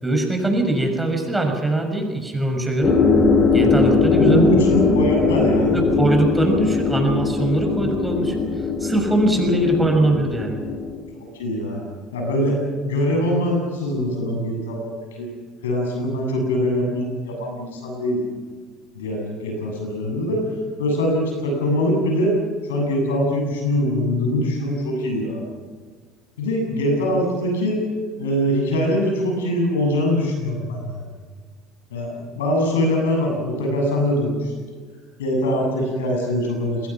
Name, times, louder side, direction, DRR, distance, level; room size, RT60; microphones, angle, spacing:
voice 1, 0.0-3.0 3.5-4.5 5.2-5.3 5.7-8.3 8.8-10.6, right 1 dB, 10° right, 3 dB, 6.7 m, -21 dB
sound 1, 2.8-11.0, left 4 dB, 45° left, 5.7 m, -20 dB
voice 2, 4.1-5.8 11.4-11.8 12.1-12.6 12.8-15.3 15.6-18.2 18.9-20.4 20.8-22.3 22.7-25.4 26.4-27.8 28.2-31.0 31.9-34.8 35.2-36.8, left 1 dB, 85° left, 1 dB, 7.8 m, -22 dB
28.0 x 21.5 x 6.0 m, 1.5 s
hypercardioid pair, 70°, 0 cm